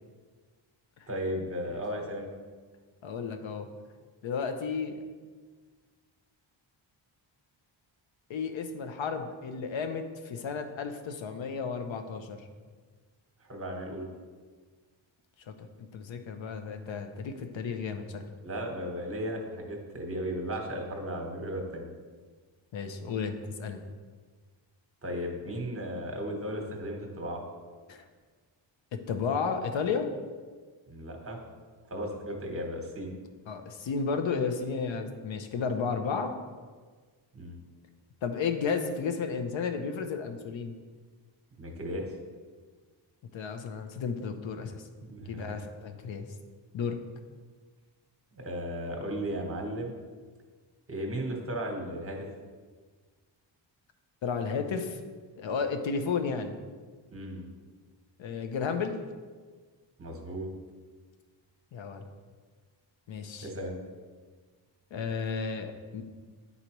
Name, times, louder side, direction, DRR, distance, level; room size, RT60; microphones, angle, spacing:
voice 1, 1.1-2.3 13.4-14.1 18.4-21.9 25.0-27.4 30.9-31.4 31.9-33.2 37.3-37.6 41.6-42.1 45.0-45.6 48.3-49.9 50.9-52.3 57.1-57.5 60.0-60.5 63.4-63.8, equal, 30° right, 2 dB, 1.1 m, -35 dB
voice 2, 3.0-3.7 4.2-5.0 8.3-12.4 15.5-18.2 22.7-23.8 27.9-28.0 28.9-30.1 33.5-36.3 38.2-40.7 43.3-44.8 45.2-46.3 46.7-47.0 54.2-55.0 55.4-56.5 58.2-59.0 61.7-62.0 63.1-63.5 64.9-66.0, left 5 dB, 70° left, 7 dB, 0.7 m, -33 dB
9.7 x 4.1 x 3.0 m, 1.5 s
wide cardioid pair, 140°, 47 cm